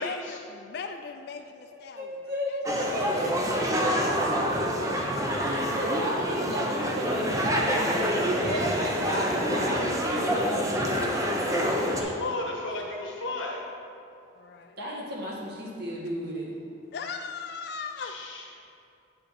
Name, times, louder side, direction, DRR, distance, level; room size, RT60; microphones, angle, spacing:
voice 1, 0.0-2.1 2.5-2.6 4.7-5.0 14.4-14.8 16.9-18.2, left 5 dB, 55° left, 7 dB, 0.3 m, -38 dB
voice 2, 1.7-3.4 5.4-10.9 14.8-16.6, equal, 50° right, -4 dB, 1.6 m, -34 dB
sound 1, 2.6-12.0, equal, 15° right, 0.6 m, -27 dB
voice 3, 11.7-13.6 18.0-18.4, left 2 dB, 75° left, -1 dB, 1.3 m, -34 dB
8.7 x 5.7 x 4.1 m, 2.6 s
head